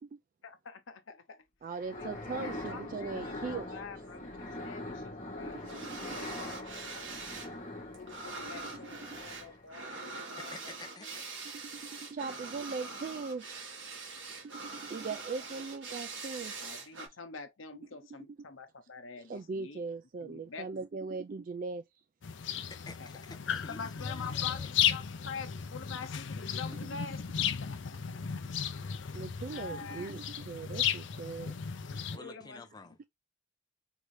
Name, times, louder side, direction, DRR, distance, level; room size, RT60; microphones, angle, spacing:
voice 1, 0.4-1.4 1.9-7.1 7.9-11.2 16.6-19.8 20.2-20.8 23.0-23.2 23.7-28.4 29.0-29.2 29.5-30.1 31.9-32.7, left 5 dB, 85° left, 0.9 m, -46 dB
voice 2, 1.6-3.7 6.0-6.1 12.1-13.5 14.4-16.5 19.3-21.8 29.1-31.5 32.1-32.3, right 4 dB, 40° right, 0.3 m, -39 dB
sound 1, 1.7-9.7, left 1 dB, 40° left, 1.3 m, -43 dB
sound 2, 5.6-7.5 7.8-17.1, right 3 dB, 70° right, 1.6 m, -43 dB
voice 3, 10.4-11.1 22.7-24.7 32.1-33.1, left 3 dB, 20° left, 0.6 m, -50 dB
sound 3, 22.2-32.2, left 8 dB, 65° left, 0.5 m, -35 dB
4.7 x 2.7 x 3.2 m
head